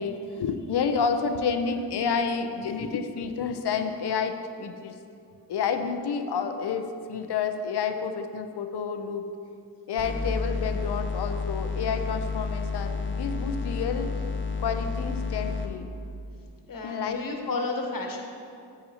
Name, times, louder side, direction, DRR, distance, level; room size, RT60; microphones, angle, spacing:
voice 1, 0.0-5.0 5.5-9.3 9.9-14.1 14.6-15.9 16.8-17.2, left 6 dB, 65° left, 7 dB, 0.8 m, -29 dB
sound 1, 10.0-15.7, left 4 dB, 25° left, 1.1 m, -30 dB
voice 2, 16.7-18.2, left 3 dB, 50° left, 1 dB, 1.4 m, -32 dB
10.5 x 8.5 x 3.0 m, 2.4 s
cardioid pair, 65°, 44 cm